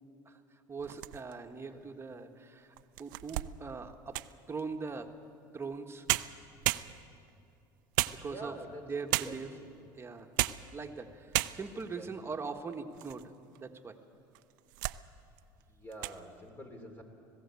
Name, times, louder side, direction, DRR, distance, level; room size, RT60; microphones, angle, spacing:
voice 1, 0.7-2.7 3.0-4.2 4.5-5.1 5.5-6.0 8.1-8.5 8.9-9.5 10.0-10.3 10.7-11.3 11.5-13.3 13.6-14.0, right 4 dB, 25° right, 6 dB, 1.5 m, -41 dB
sound 1, 0.8-1.5 2.1-2.2 2.8-4.4 5.7-5.8 6.1-7.3 8.0-8.7 9.1-9.6 10.2-10.7 11.0-11.1 11.3-11.9 12.5-13.2 13.6-13.7 14.3-15.0 15.4-15.6 15.9-16.2, right 19 dB, 80° right, 0.5 m, -34 dB
voice 2, 8.2-9.7 11.7-12.1 15.7-17.0, right 1 dB, 20° left, 4 dB, 3.0 m, -47 dB
19.5 x 16.0 x 8.3 m, 2.6 s
supercardioid pair, 85°, 10 cm